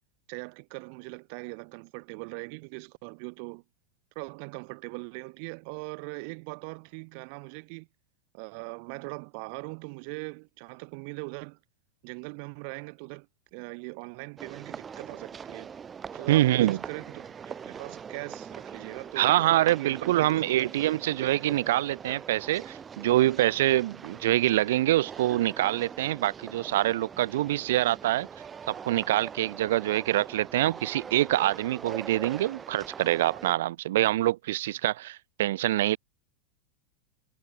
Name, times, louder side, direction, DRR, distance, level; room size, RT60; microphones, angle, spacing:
voice 1, 0.3-3.6 4.2-7.9 8.3-11.6 12.0-13.3 13.5-15.7 16.1-19.3 19.7-21.0, right 37 dB, 40° right, 4.0 m, -41 dB
sound 1, 14.4-33.5, right 7 dB, 15° right, 1.0 m, -43 dB
voice 2, 16.3-16.8 19.2-28.3 28.7-36.0, right 15 dB, 65° right, 0.6 m, -25 dB
supercardioid pair, 175°, 0 cm